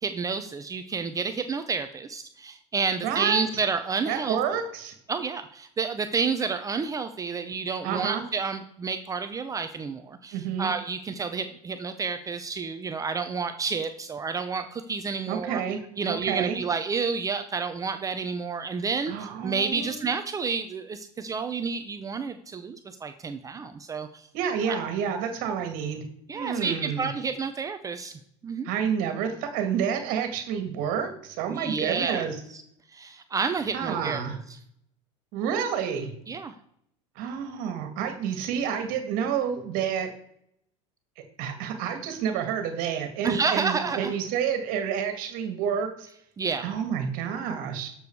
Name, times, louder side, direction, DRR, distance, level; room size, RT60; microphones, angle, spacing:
voice 1, 0.0-4.4 5.1-15.6 16.0-24.3 24.6-24.8 26.3-28.1 28.4-28.7 31.5-32.6 32.9-34.2 36.3-36.5 43.2-44.1 46.4-46.6, right 5 dB, 20° right, 8 dB, 0.7 m, -30 dB
voice 2, 3.0-3.4 4.1-4.9 7.8-8.2 10.3-10.7 15.3-15.8 16.1-16.6 19.1-20.0 24.3-26.0 26.3-27.1 28.6-32.4 33.7-34.4 35.3-36.1 37.2-40.1 41.4-45.9 46.6-47.9, right 8 dB, 60° right, 7 dB, 2.1 m, -29 dB
12.0 x 7.2 x 4.7 m, 0.70 s
supercardioid pair, 125°, 17 cm